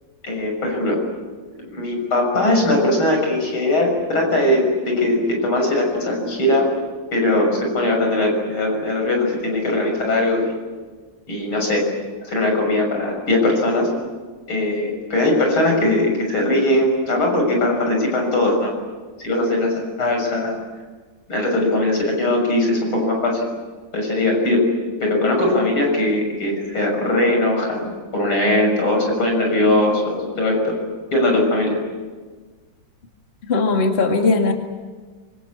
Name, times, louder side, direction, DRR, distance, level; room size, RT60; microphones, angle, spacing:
voice 1, 0.2-1.0 1.6-6.7 7.1-10.5 11.3-11.9 12.2-13.9 14.5-18.7 19.2-19.7 20.0-20.6 21.3-23.4 23.9-24.6 25.0-30.8 31.1-31.8, left 1 dB, 80° left, 2 dB, 7.5 m, -20 dB
voice 2, 33.5-34.5, left 3 dB, 30° left, 3 dB, 2.3 m, -18 dB
25.5 x 24.5 x 8.6 m, 1.4 s
omnidirectional pair, 2.3 m